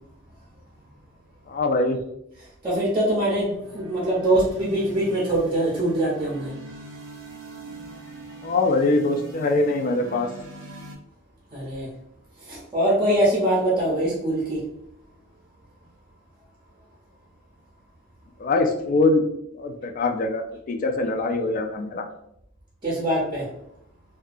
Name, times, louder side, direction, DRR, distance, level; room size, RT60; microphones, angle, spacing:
voice 1, 1.5-2.0 8.4-10.3 18.4-19.2 19.5-22.0, left 2 dB, 40° left, 5 dB, 0.3 m, -23 dB
voice 2, 2.6-6.5 11.5-11.9 12.5-14.6 22.8-23.5, right 1 dB, 20° right, -6 dB, 0.6 m, -23 dB
sound 1, 3.4-11.0, right 2 dB, 90° right, 0.7 m, -42 dB
2.7 x 2.3 x 2.4 m, 0.77 s
head